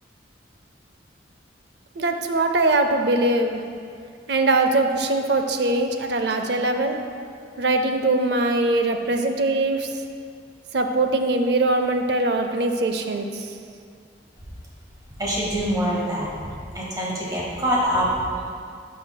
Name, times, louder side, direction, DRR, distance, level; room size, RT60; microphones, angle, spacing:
voice 1, 2.0-3.6 4.3-7.0 7.6-9.9 10.7-13.5, right 2 dB, 60° right, 6 dB, 0.5 m, -22 dB
voice 2, 15.2-16.3 16.7-18.4, equal, 20° right, -5 dB, 1.5 m, -24 dB
11.5 x 6.4 x 2.2 m, 2.3 s
head